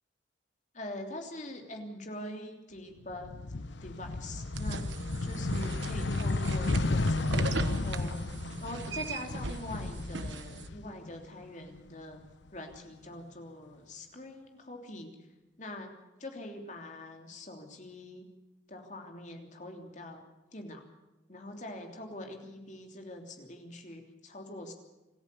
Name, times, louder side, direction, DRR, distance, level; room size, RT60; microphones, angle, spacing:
voice 1, 0.7-3.3 3.8-4.8 5.2-8.1 8.6-12.2 12.5-15.1 15.6-15.9 16.2-18.3 18.7-20.2 20.5-20.8 21.3-24.7, left 1 dB, 40° left, 3 dB, 3.2 m, -43 dB
sound 1, 3.1-11.2 11.6-12.8, left 2 dB, 70° left, 0.8 m, -33 dB
sound 2, 4.5-10.7, right 3 dB, 70° right, 1.3 m, -39 dB
26.5 x 14.0 x 6.9 m, 1.1 s
head